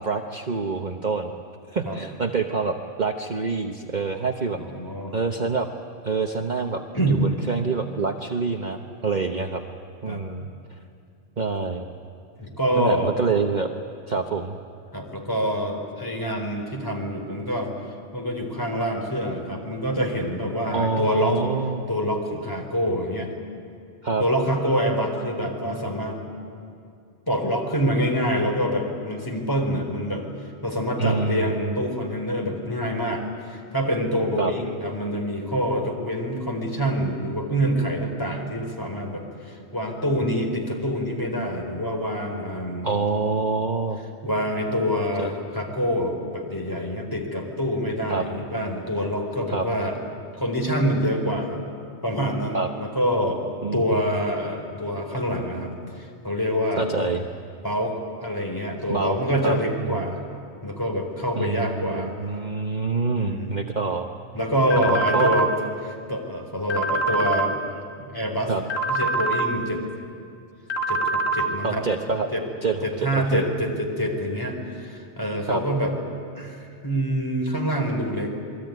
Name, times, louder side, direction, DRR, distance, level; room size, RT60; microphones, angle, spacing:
voice 1, 0.0-1.3 1.7-4.6 5.1-5.7 6.0-6.8 7.1-9.6 10.0-10.5 11.4-11.8 12.8-13.7 14.1-14.6 20.7-21.9 24.0-24.2 31.0-31.7 34.4-34.5 42.8-44.0 45.2-45.3 48.1-48.3 49.5-49.7 52.5-52.7 53.6-54.1 56.8-57.3 58.9-59.2 59.4-60.2 61.4-64.1 64.7-65.3 68.5-68.6 71.6-72.3 72.6-73.5 75.5-75.6, right 4 dB, 40° right, 3 dB, 1.1 m, -26 dB
voice 2, 4.5-5.2 6.9-7.3 10.1-10.2 12.4-13.1 14.9-17.7 18.1-21.4 21.9-23.3 24.2-26.2 27.3-30.2 30.6-42.9 44.2-50.0 50.4-51.6 52.0-53.4 53.7-56.9 57.6-57.9 58.2-60.2 60.6-62.1 63.2-63.5 64.3-65.5 65.8-67.6 68.0-68.5 68.9-69.8 70.9-71.9 72.3-72.4 72.8-75.9 76.3-78.3, equal, 15° left, 1 dB, 4.1 m, -26 dB
sound 1, 64.7-65.5 66.7-67.5 68.7-69.5 70.7-71.5, right 3 dB, 85° left, 2.2 m, -24 dB
27.5 x 22.0 x 9.4 m, 2.5 s
omnidirectional pair, 1.3 m